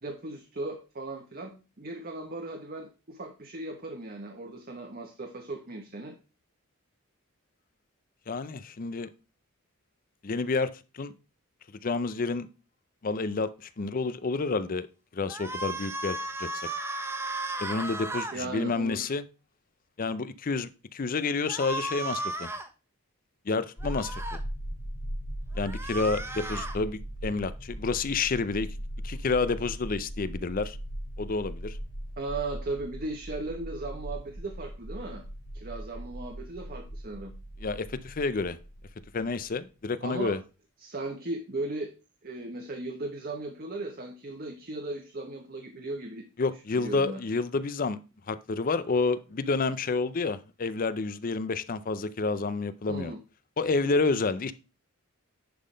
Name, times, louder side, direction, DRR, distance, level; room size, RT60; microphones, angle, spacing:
voice 1, 0.0-6.1 18.3-19.1 32.2-35.2 35.5-37.3 40.0-40.4 40.8-41.9 42.2-46.3 46.8-47.2 52.9-53.2, right 2 dB, 40° right, 1.0 m, -37 dB
voice 2, 8.3-9.1 10.2-11.1 11.8-12.5 13.0-14.9 15.1-16.7 17.6-19.2 20.0-22.5 23.5-24.2 25.5-28.7 29.0-30.8 31.2-31.8 37.6-38.6 39.1-40.4 46.4-48.0 48.3-53.1 53.6-54.5, left 4 dB, 40° left, 0.5 m, -29 dB
sound 1, 15.3-18.4 21.5-22.7 23.8-24.4 25.6-26.8, right 2 dB, 10° right, 0.7 m, -35 dB
sound 2, 23.8-39.5, equal, 85° left, 3.5 m, -39 dB
10.5 x 3.8 x 5.0 m
head